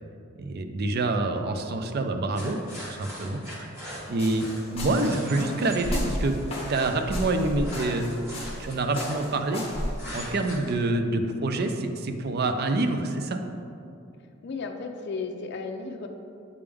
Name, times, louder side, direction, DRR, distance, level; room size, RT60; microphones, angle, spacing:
voice 1, 0.4-3.7 4.1-6.4 6.7-8.1 8.6-9.7 10.1-13.4, right 2 dB, 50° right, 6 dB, 0.4 m, -27 dB
sound 1, 2.3-5.9 6.3-9.6 10.0-10.7, equal, 15° right, 1.4 m, -41 dB
sound 2, 4.0-10.5, left 1 dB, 30° left, 1.0 m, -34 dB
voice 2, 14.4-16.1, left 4 dB, 55° left, 4 dB, 0.4 m, -34 dB
8.1 x 3.4 x 3.4 m, 2.6 s
head